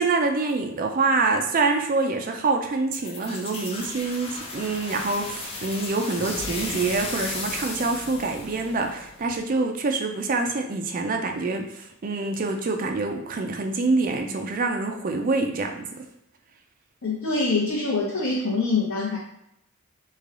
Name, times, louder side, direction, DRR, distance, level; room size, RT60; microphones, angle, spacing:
voice 1, 0.0-16.0, right 3 dB, 40° right, 4 dB, 0.4 m, -26 dB
sound 1, 2.9-9.5, left 3 dB, 25° left, 0.4 m, -35 dB
voice 2, 17.0-19.2, left 3 dB, 70° left, -8 dB, 0.8 m, -24 dB
3.2 x 2.3 x 3.6 m, 0.79 s
head